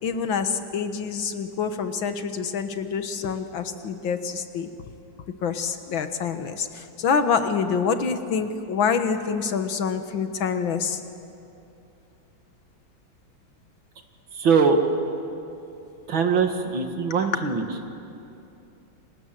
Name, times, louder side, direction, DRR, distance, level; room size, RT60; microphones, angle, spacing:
voice 1, 0.0-4.7 5.4-11.0 17.4-17.5, left 6 dB, 80° left, 8 dB, 2.2 m, -26 dB
voice 2, 14.3-14.8 16.1-17.6, right 5 dB, 80° right, 5 dB, 2.7 m, -21 dB
29.5 x 26.5 x 7.7 m, 2.7 s
omnidirectional pair, 2.1 m